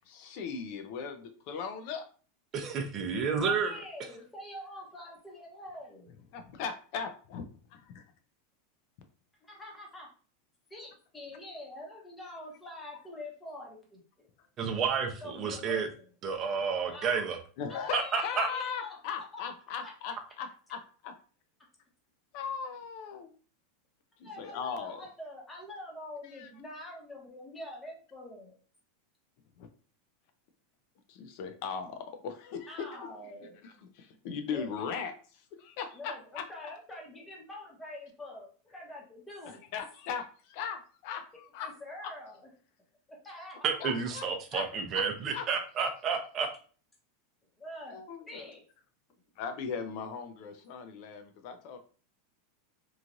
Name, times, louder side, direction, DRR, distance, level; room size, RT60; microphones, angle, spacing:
voice 1, 0.1-2.1 6.3-8.0 17.6-21.1 22.3-23.3 24.2-25.0 26.2-26.5 29.6-29.7 31.1-32.9 33.6-36.4 39.7-41.7 43.8-44.3 44.5-44.6 44.9-45.0 45.3-45.5 47.9-48.5 49.4-51.8, left 6 dB, 55° left, 7 dB, 0.5 m, -38 dB
voice 2, 2.5-3.7 14.6-15.9 16.2-17.4 17.9-18.5 43.6-46.5, right 6 dB, 30° right, 4 dB, 0.6 m, -30 dB
voice 3, 3.4-6.2 9.5-10.1 10.7-14.3 15.2-16.1 16.9-17.3 17.7-19.0 19.3-19.4 19.8-19.9 24.2-28.5 32.7-33.9 34.5-34.7 35.9-39.6 41.6-42.3 43.2-43.6 47.6-48.7, left 1 dB, 10° left, -2 dB, 0.9 m, -45 dB
3.0 x 2.4 x 2.5 m, 0.40 s
supercardioid pair, 145°, 0 cm